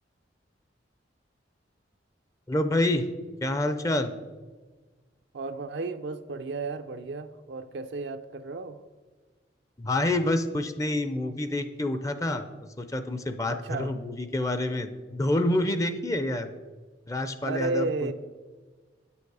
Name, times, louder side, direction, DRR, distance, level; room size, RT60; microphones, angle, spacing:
voice 1, 2.5-3.1 3.4-4.1 9.8-12.5 12.8-16.5 17.1-18.1, left 1 dB, 20° left, 9 dB, 0.5 m, -27 dB
voice 2, 5.3-8.8 13.5-13.9 17.4-18.1, right 3 dB, 70° right, 8 dB, 0.4 m, -33 dB
9.1 x 6.9 x 4.8 m, 1.4 s
head